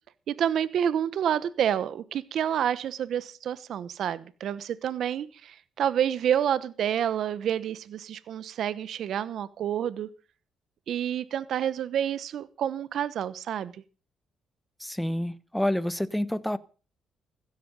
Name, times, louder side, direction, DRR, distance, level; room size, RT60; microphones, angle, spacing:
voice 1, 0.3-10.1 10.9-13.7, right 9 dB, 70° right, 16 dB, 1.0 m, -28 dB
voice 2, 14.8-16.6, left 1 dB, 5° left, 16 dB, 1.2 m, -28 dB
15.5 x 13.5 x 5.4 m, 0.37 s
cardioid pair, 90°, 0 cm